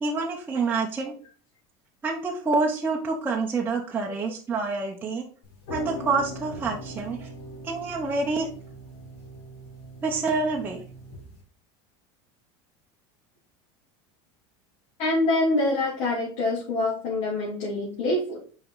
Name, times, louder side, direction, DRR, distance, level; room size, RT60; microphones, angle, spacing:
voice 1, 0.0-1.1 2.0-5.3 5.7-7.3 7.6-8.5 10.0-10.8, right 3 dB, 15° right, -1 dB, 0.8 m, -27 dB
sound 1, 5.4-11.4, equal, 80° left, 3.6 m, -40 dB
voice 2, 15.0-18.4, left 2 dB, 55° left, -6 dB, 2.8 m, -25 dB
5.7 x 5.1 x 3.9 m, 0.40 s
supercardioid pair, 150°, 14 cm